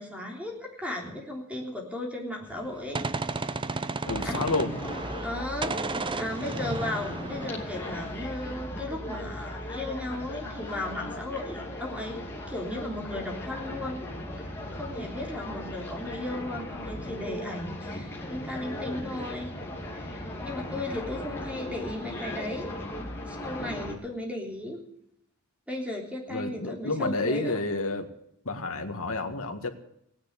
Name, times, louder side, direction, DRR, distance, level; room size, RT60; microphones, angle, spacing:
voice 1, 0.0-3.0 3.7-3.8 4.2-4.5 5.2-5.7 6.1-14.0 14.4-19.5 19.9-22.7 23.2-24.8 25.7-27.6, left 1 dB, 5° right, 1 dB, 3.4 m, -36 dB
Gunshot gunfire, 2.5-5.4 5.6-8.3, right 3 dB, 20° right, 0.7 m, -33 dB
voice 2, 4.1-4.7 26.3-28.1 28.5-29.7, left 2 dB, 65° left, 5 dB, 1.8 m, -30 dB
sound 1, 4.1-23.9, left 1 dB, 10° left, 2.7 m, -37 dB
17.0 x 10.0 x 8.2 m, 0.75 s
head